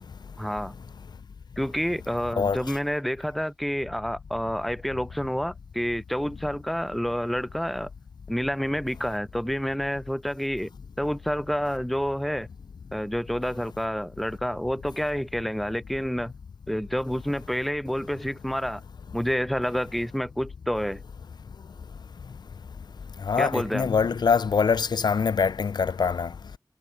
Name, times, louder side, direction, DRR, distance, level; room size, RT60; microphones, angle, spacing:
voice 1, 0.4-0.7 1.6-7.9 8.3-10.7 11.0-12.5 12.9-16.3 16.7-18.8 19.1-21.0 23.4-23.9, equal, ahead, 0.6 m, -28 dB
voice 2, 23.2-26.3, left 5 dB, 80° left, 0.4 m, -24 dB
wide cardioid pair, 65°, 7 cm